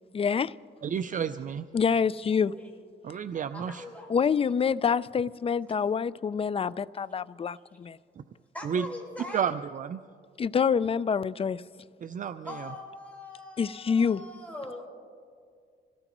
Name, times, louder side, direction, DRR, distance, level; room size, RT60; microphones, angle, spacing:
voice 1, 0.1-0.5 1.7-2.5 4.1-8.0 10.4-11.6 13.6-14.2, left 6 dB, 30° left, 0.4 m, -26 dB
voice 2, 0.8-1.6 3.0-3.8 8.2-8.3 8.6-8.9 9.3-10.0 12.0-12.7, right 7 dB, 40° right, 0.5 m, -31 dB
voice 3, 3.5-4.1 8.5-9.4 12.4-14.9, left 2 dB, 5° left, 4.7 m, -42 dB
26.0 x 17.0 x 3.0 m
cardioid pair, 90°, 20 cm